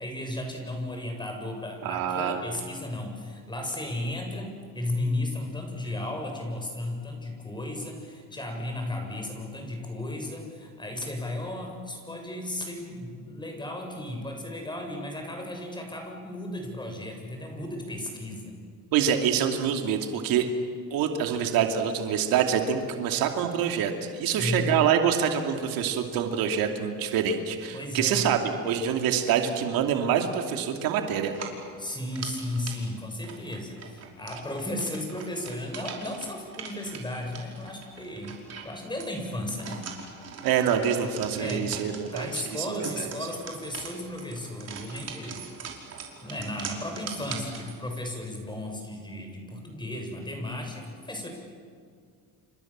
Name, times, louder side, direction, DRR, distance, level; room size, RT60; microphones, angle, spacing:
voice 1, 0.0-18.6 24.2-24.9 27.7-28.2 31.8-39.8 41.3-45.5 46.2-51.3, left 1 dB, 15° left, 3 dB, 7.4 m, -34 dB
voice 2, 1.8-2.4 18.9-20.5 20.9-31.3 40.4-43.1, right 8 dB, 80° right, 4 dB, 2.8 m, -26 dB
sound 1, 31.3-48.1, right 6 dB, 45° right, 5.3 m, -42 dB
30.0 x 26.5 x 7.5 m, 2.1 s
cardioid pair, 110°, 34 cm